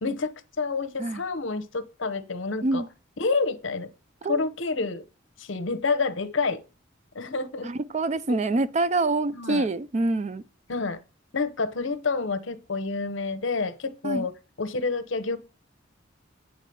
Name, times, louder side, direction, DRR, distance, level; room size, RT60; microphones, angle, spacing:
voice 1, 0.0-2.8 3.2-3.9 4.3-5.0 5.4-6.6 7.1-7.7 8.3-8.4 9.3-9.7 10.7-11.0 11.3-15.4, left 4 dB, 75° left, 0.9 m, -28 dB
voice 2, 7.6-10.4 14.0-14.3, right 2 dB, 35° right, 0.4 m, -26 dB
9.1 x 3.7 x 6.9 m
head